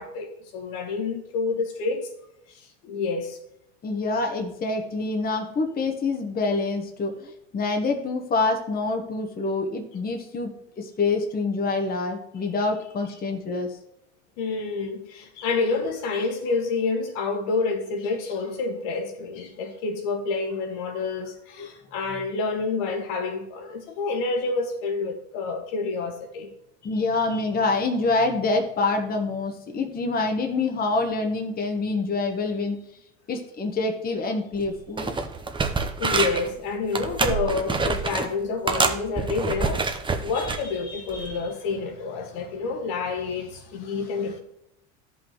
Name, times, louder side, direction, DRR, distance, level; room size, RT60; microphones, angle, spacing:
voice 1, 0.0-2.1 2.5-3.4 14.4-26.5 36.0-39.9 40.2-44.4, left 4 dB, 70° left, 1.7 m, -28 dB
voice 2, 3.8-13.7 21.6-21.7 26.8-32.8 33.3-35.2, left 3 dB, 25° left, 1.1 m, -26 dB
sound 1, 34.6-34.7 35.0-36.5 36.9-38.3 38.7-40.6 41.1-41.3, right 4 dB, 15° right, 0.8 m, -26 dB
13.5 x 5.5 x 3.0 m
supercardioid pair, 95°, 33 cm